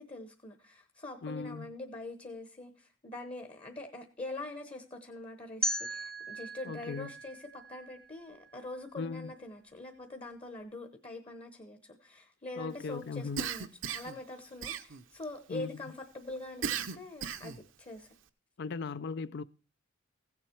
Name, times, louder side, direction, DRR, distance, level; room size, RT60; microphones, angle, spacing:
voice 1, 0.0-18.1, left 2 dB, 30° left, 1.0 m, -44 dB
voice 2, 1.2-1.7 6.6-7.1 9.0-9.3 12.6-13.4 15.5-15.8 18.6-19.4, left 4 dB, 55° left, 0.5 m, -38 dB
sound 1, 5.6-8.6, equal, 5° left, 0.6 m, -38 dB
Cough, 13.4-14.2 14.6-15.2 16.6-17.6, right 7 dB, 70° right, 0.7 m, -36 dB
16.0 x 7.3 x 4.5 m
head